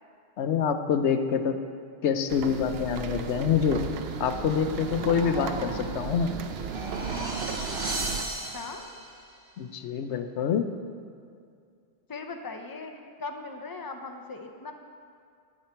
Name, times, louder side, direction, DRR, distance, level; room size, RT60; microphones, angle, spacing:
voice 1, 0.4-1.6 2.0-3.8 4.2-6.4 9.6-10.7, left 7 dB, 75° left, 8 dB, 0.9 m, -26 dB
sound 1, 2.3-8.2, right 6 dB, 65° right, 0.8 m, -35 dB
sound 2, 4.7-6.0 6.6-8.2, right 2 dB, 25° right, 1.2 m, -39 dB
sound 3, 6.4-9.3, right 2 dB, 40° right, 1.4 m, -36 dB
voice 2, 8.2-8.8 12.1-14.7, left 3 dB, 25° left, 4 dB, 0.6 m, -39 dB
10.5 x 8.7 x 4.4 m, 2.3 s
omnidirectional pair, 1.2 m